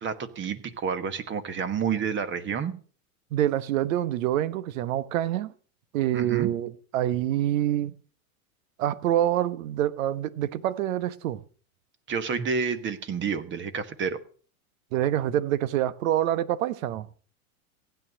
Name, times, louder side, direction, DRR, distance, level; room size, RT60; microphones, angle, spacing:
voice 1, 0.0-2.7 6.1-6.5 12.1-14.2, right 6 dB, 25° right, 1.4 m, -29 dB
voice 2, 3.3-5.5 5.9-7.9 8.8-11.4 14.9-17.1, right 12 dB, 65° right, 1.2 m, -26 dB
16.0 x 9.2 x 6.2 m
hypercardioid pair, 120°, 43 cm